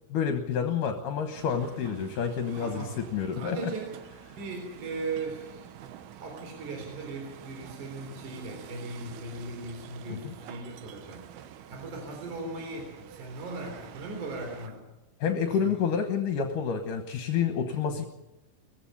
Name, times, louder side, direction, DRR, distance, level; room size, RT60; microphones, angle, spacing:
voice 1, 0.1-3.7 10.1-10.3 15.2-18.1, left 7 dB, 65° left, 6 dB, 2.5 m, -29 dB
sound 1, 1.3-14.7, right 10 dB, 85° right, 3.1 m, -48 dB
voice 2, 2.6-3.0 3.3-3.9 4.3-5.7 6.1-14.8 15.5-15.8 17.9-18.1, right 3 dB, 55° right, 3 dB, 5.2 m, -38 dB
20.0 x 15.5 x 8.6 m, 0.96 s
omnidirectional pair, 4.4 m